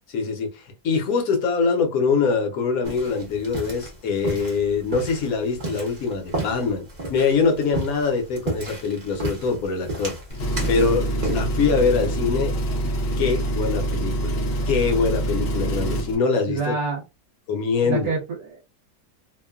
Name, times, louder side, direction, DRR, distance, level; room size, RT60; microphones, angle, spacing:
voice 1, 0.1-10.1 10.7-12.5 12.8-14.4 14.7-16.8 17.5-18.1, left 5 dB, 65° left, 1.0 m, -23 dB
sound 1, 2.8-11.4, right 2 dB, 30° right, 0.9 m, -33 dB
Engine, 10.3-16.1, right 1 dB, 85° left, 0.5 m, -25 dB
voice 2, 16.5-17.0 17.8-18.6, right 4 dB, 60° right, 1.1 m, -27 dB
2.9 x 2.2 x 2.3 m
omnidirectional pair, 1.9 m